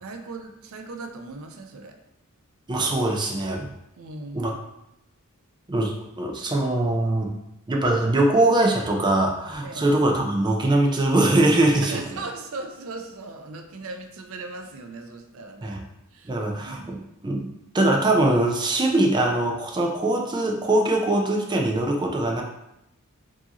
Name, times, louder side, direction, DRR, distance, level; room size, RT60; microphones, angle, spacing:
voice 1, 0.0-2.0 4.0-4.5 9.6-9.9 11.8-15.8 16.1-17.0, right 3 dB, 65° right, 5 dB, 0.5 m, -38 dB
voice 2, 2.7-3.7 4.3-4.5 5.7-7.3 7.7-12.0 15.6-15.8 16.2-22.4, right 1 dB, 20° right, 0 dB, 0.5 m, -22 dB
4.6 x 2.8 x 2.9 m, 0.85 s
head